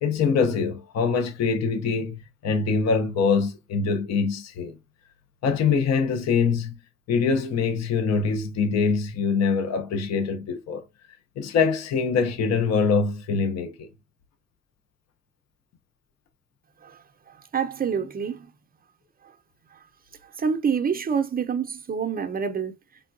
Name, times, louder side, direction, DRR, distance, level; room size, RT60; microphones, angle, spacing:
voice 1, 0.0-4.8 5.4-6.8 7.1-10.8 11.4-13.9, left 5 dB, 60° left, 0.6 m, -24 dB
voice 2, 17.5-18.5 20.4-22.7, right 6 dB, 30° right, 0.5 m, -26 dB
3.5 x 2.2 x 2.5 m
cardioid pair, 90°, 30 cm